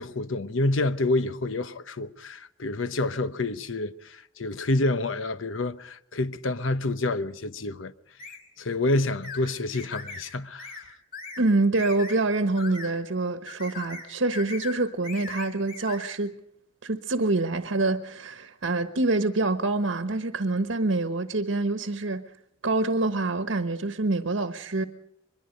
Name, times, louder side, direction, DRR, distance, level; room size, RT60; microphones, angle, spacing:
voice 1, 0.0-7.9 8.6-10.8, left 2 dB, 80° left, 0.9 m, -28 dB
sound 1, 8.2-8.4 9.2-9.4 9.7-10.2 10.6-10.8 11.1-11.4 11.7-12.2 12.6-12.9 13.5-14.1 14.3-14.8 15.0-16.0, left 4 dB, 50° left, 4.8 m, -39 dB
voice 2, 11.4-16.3 16.8-22.2 22.6-24.8, right 2 dB, 80° right, 1.2 m, -26 dB
23.5 x 21.5 x 5.3 m
head